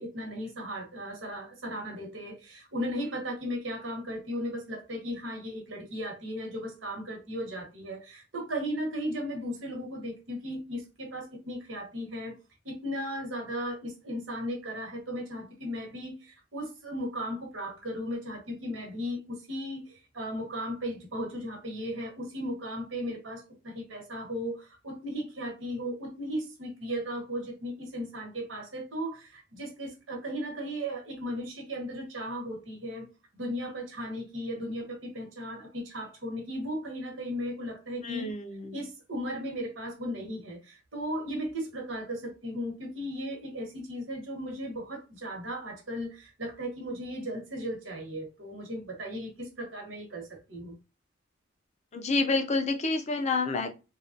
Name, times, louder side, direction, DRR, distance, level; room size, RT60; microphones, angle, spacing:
voice 1, 0.0-12.4 12.6-33.1 33.3-38.3 38.7-50.7, equal, 80° right, 1.2 m, -36 dB
voice 2, 38.0-38.8 51.9-53.7, left 3 dB, 35° left, 0.5 m, -29 dB
3.1 x 2.3 x 2.5 m
head